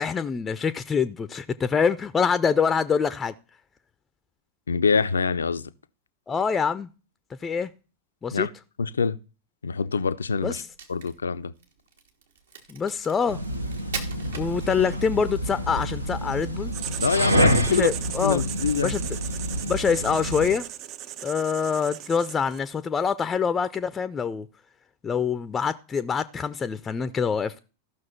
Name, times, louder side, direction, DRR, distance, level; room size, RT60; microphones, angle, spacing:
voice 1, 0.0-3.3 6.3-6.9 7.4-7.7 8.2-8.5 10.4-10.7 12.7-13.4 14.4-16.7 17.7-18.4 18.8-19.0 19.6-20.7 21.2-24.5 25.0-27.6, left 6 dB, 20° left, 0.5 m, -25 dB
voice 2, 4.7-5.7 8.3-8.5 8.8-9.2 9.6-10.6 10.9-11.5 17.0-17.9 18.2-19.0, left 5 dB, 70° left, 0.5 m, -25 dB
Crack, 10.6-15.2, right 6 dB, 65° right, 1.6 m, -40 dB
sound 1, 13.3-20.6, equal, 85° right, 0.9 m, -28 dB
Writing, 16.7-22.7, right 12 dB, 40° right, 0.5 m, -36 dB
14.5 x 6.2 x 4.3 m
figure-of-eight pair, 90°, 0 cm